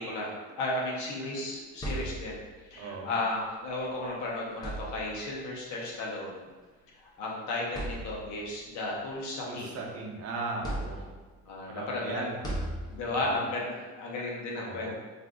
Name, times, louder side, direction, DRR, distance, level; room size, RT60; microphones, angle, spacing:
voice 1, 0.0-6.4 7.0-9.8 11.5-12.2 12.9-14.9, left 2 dB, 75° left, -3 dB, 0.9 m, -34 dB
sound 1, 1.5-2.6 3.9-4.0 4.5-5.4 6.5-6.6 7.2-7.3 7.7-8.5 9.0-10.1 10.6-11.4 12.4-13.3, right 1 dB, 15° left, 0.5 m, -37 dB
voice 2, 2.8-3.1 9.5-11.1 11.7-12.4 13.1-13.4 14.6-14.9, right 3 dB, 55° right, 0 dB, 0.7 m, -37 dB
2.6 x 2.4 x 3.5 m, 1.3 s
cardioid pair, 135°, 30 cm